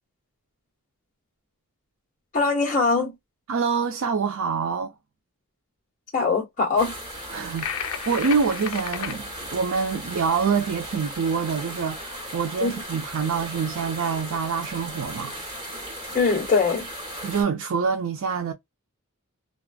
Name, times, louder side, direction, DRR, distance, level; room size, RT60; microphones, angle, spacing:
voice 1, 2.3-3.1 6.1-6.9 12.6-12.7 16.1-16.9, left 4 dB, 35° left, 1.1 m, -22 dB
voice 2, 3.5-4.9 7.3-15.3 17.2-18.5, right 5 dB, 65° right, 0.4 m, -26 dB
sound 1, 6.8-17.4, equal, 20° right, 1.3 m, -37 dB
sound 2, 7.6-9.2, left 8 dB, 75° left, 0.5 m, -32 dB
2.4 x 2.2 x 2.4 m
head